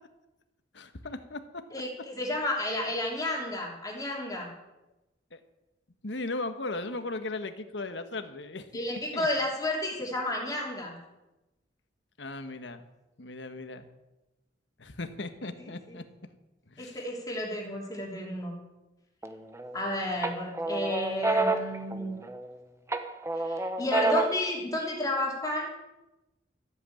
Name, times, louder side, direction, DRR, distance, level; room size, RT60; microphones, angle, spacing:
voice 1, 0.7-1.6 5.3-5.4 6.0-9.3 12.2-12.8 13.2-13.8 14.8-16.0 16.7-17.0, left 2 dB, 90° left, 8 dB, 1.3 m, -37 dB
voice 2, 1.7-4.5 8.7-11.0 15.6-15.7 16.8-18.5 19.7-22.1 23.3-25.7, left 1 dB, 20° left, -2 dB, 2.9 m, -32 dB
sound 1, 19.2-19.8 20.2-22.5 22.9-24.5, right 2 dB, 15° right, 0.9 m, -29 dB
14.0 x 8.0 x 8.6 m, 1.0 s
head